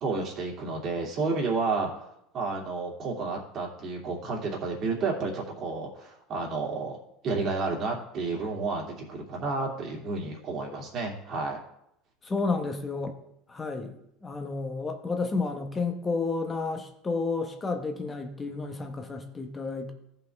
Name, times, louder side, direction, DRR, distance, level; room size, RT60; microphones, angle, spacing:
voice 1, 0.0-2.0 2.3-7.0 7.2-11.6, right 3 dB, 40° right, -1 dB, 2.6 m, -31 dB
voice 2, 12.2-13.1 13.5-19.9, left 3 dB, 20° left, 4 dB, 1.0 m, -31 dB
15.0 x 5.5 x 3.4 m, 0.78 s
supercardioid pair, 130°, 0 cm